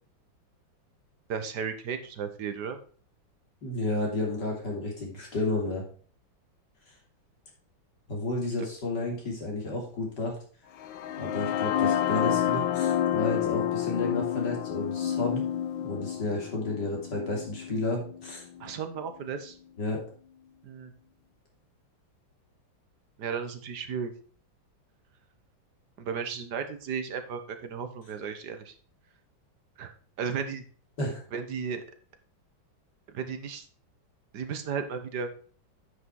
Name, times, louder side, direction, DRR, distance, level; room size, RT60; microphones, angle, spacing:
voice 1, 1.3-2.8 18.6-19.6 20.6-20.9 23.2-24.1 26.0-28.7 29.8-30.6 31.3-31.8 33.1-33.6 34.3-35.3, right 6 dB, 60° right, 8 dB, 1.6 m, -34 dB
voice 2, 3.6-5.8 8.1-10.4 11.2-15.4 15.8-18.5 19.8-20.0 31.0-31.2, left 2 dB, 60° left, 0 dB, 3.5 m, -31 dB
sound 1, 10.8-18.7, left 10 dB, 85° left, 1.5 m, -29 dB
9.6 x 6.0 x 4.5 m, 0.43 s
omnidirectional pair, 2.1 m